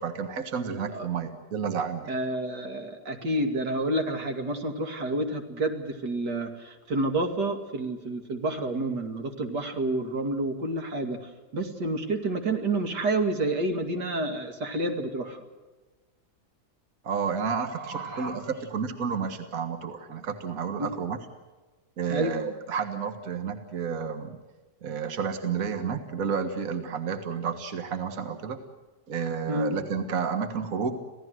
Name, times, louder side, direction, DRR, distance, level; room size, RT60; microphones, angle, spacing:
voice 1, 0.0-2.1 17.0-21.2 22.0-24.4 24.8-28.6 29.1-31.0, right 6 dB, 55° right, 8 dB, 2.0 m, -31 dB
voice 2, 2.1-15.4 17.7-18.4 20.8-20.9 22.1-22.3 29.5-29.7, right 2 dB, 85° right, 5 dB, 2.9 m, -29 dB
27.0 x 16.5 x 7.8 m, 1.3 s
omnidirectional pair, 1.8 m